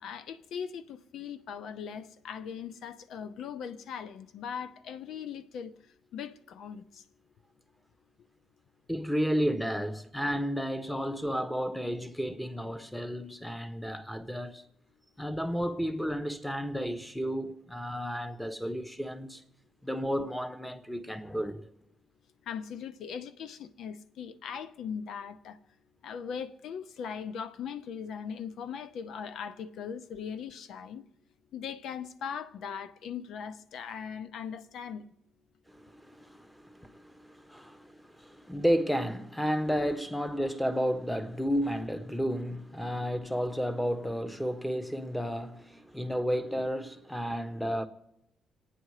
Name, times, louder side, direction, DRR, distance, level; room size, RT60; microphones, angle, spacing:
voice 1, 0.0-5.7 6.1-7.0 22.5-25.6 26.0-31.0 31.5-35.1, left 7 dB, 75° left, 0.7 m, -39 dB
voice 2, 8.9-14.6 15.2-19.4 19.8-21.7 35.7-47.9, equal, 5° left, 1.2 m, -32 dB
28.0 x 9.3 x 4.9 m
cardioid pair, 90°, 0 cm